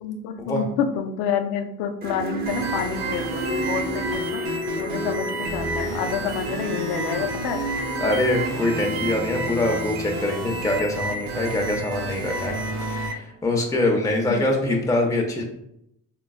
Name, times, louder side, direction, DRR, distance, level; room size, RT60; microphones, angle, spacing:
voice 1, 0.0-4.4 4.8-7.6 14.3-14.4, left 7 dB, 75° left, 7 dB, 0.5 m, -28 dB
sound 1, 2.0-8.8, equal, 25° right, 0.8 m, -32 dB
sound 2, 2.5-13.1, right 2 dB, 80° right, 0.6 m, -30 dB
voice 2, 8.0-15.4, left 1 dB, 10° left, 0 dB, 0.6 m, -24 dB
3.7 x 2.3 x 2.3 m, 0.78 s
supercardioid pair, 70°, 38 cm